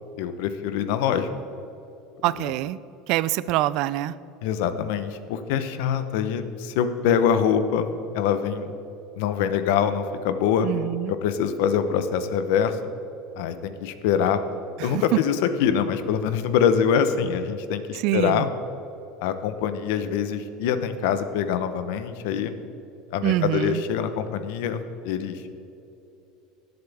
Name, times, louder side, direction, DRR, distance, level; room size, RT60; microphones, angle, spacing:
voice 1, 0.2-1.3 2.4-2.5 4.4-7.9 8.1-8.7 9.2-10.7 11.2-12.8 13.4-14.4 14.8-18.5 19.2-22.5 23.1-25.5, left 8 dB, 75° left, 10 dB, 0.9 m, -24 dB
voice 2, 2.2-2.8 3.1-4.1 10.6-11.1 14.8-15.2 17.9-18.5 23.2-23.8, right 15 dB, 55° right, 17 dB, 0.4 m, -25 dB
18.5 x 7.8 x 3.5 m, 2.9 s
cardioid pair, 150°, 0 cm